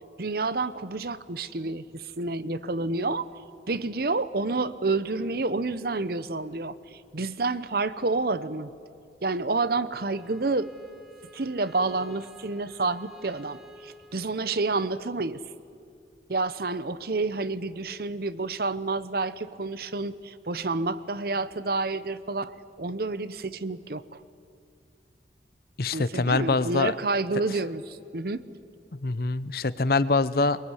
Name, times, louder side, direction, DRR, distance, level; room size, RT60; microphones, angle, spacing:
voice 1, 0.2-3.3 3.7-8.7 9.2-10.7 11.3-15.4 16.3-24.2 25.9-28.4, right 3 dB, 60° right, 15 dB, 0.9 m, -29 dB
Bowed string instrument, 9.9-14.9, equal, 5° right, 2.0 m, -51 dB
voice 2, 25.8-26.9 28.9-30.6, left 3 dB, 55° left, 15 dB, 0.8 m, -24 dB
23.0 x 22.5 x 9.9 m, 2.5 s
head